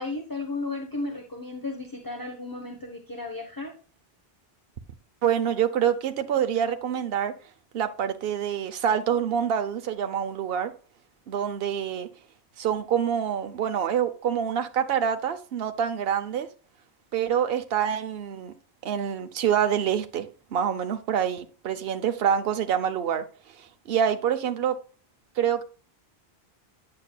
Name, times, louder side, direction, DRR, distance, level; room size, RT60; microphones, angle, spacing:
voice 1, 0.0-3.7, left 3 dB, 20° left, 1.1 m, -34 dB
voice 2, 5.2-7.3 7.7-10.7 11.3-12.1 12.6-16.5 17.1-18.5 18.8-23.2 23.6-24.8 25.4-25.6, right 8 dB, 70° right, 0.9 m, -26 dB
8.9 x 6.7 x 2.3 m
omnidirectional pair, 1.1 m